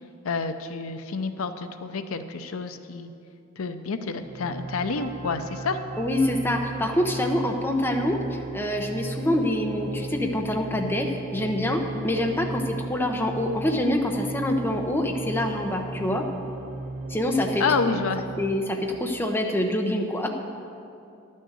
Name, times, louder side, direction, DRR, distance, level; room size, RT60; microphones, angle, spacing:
voice 1, 0.2-3.1 3.6-5.8 17.6-18.2, left 4 dB, 75° left, 9 dB, 0.6 m, -28 dB
sound 1, 4.2-18.5, right 2 dB, 30° right, 0.6 m, -36 dB
voice 2, 6.0-16.2 17.1-17.6 18.4-20.3, left 1 dB, 10° left, 2 dB, 0.8 m, -26 dB
11.0 x 6.4 x 8.1 m, 2.6 s
head